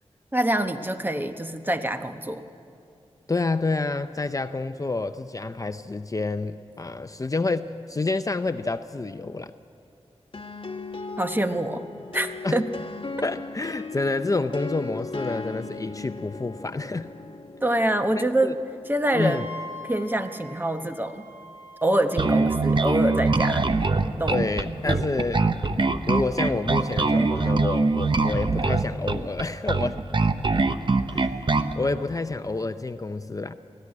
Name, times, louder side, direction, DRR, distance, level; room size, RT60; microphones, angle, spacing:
voice 1, 0.3-2.4 11.2-11.8 12.1-12.7 17.6-18.6 18.9-19.4 19.8-21.2 21.8-23.7 24.2-24.4 24.7-25.0, right 1 dB, 20° right, 7 dB, 1.2 m, -25 dB
voice 2, 3.3-9.5 12.4-12.6 13.2-17.1 18.2-18.5 19.1-19.5 24.3-25.5 26.1-30.0 31.0-33.5, left 3 dB, 30° left, 10 dB, 0.6 m, -28 dB
sound 1, 10.3-19.9, left 3 dB, 50° left, 1.2 m, -38 dB
Wind instrument woodwind instrument, 19.1-24.1, left 1 dB, 90° right, 2.5 m, -44 dB
Bass guitar, 22.2-31.8, right 3 dB, 45° right, 0.9 m, -23 dB
20.0 x 14.5 x 9.9 m, 2.5 s
wide cardioid pair, 70°, 11 cm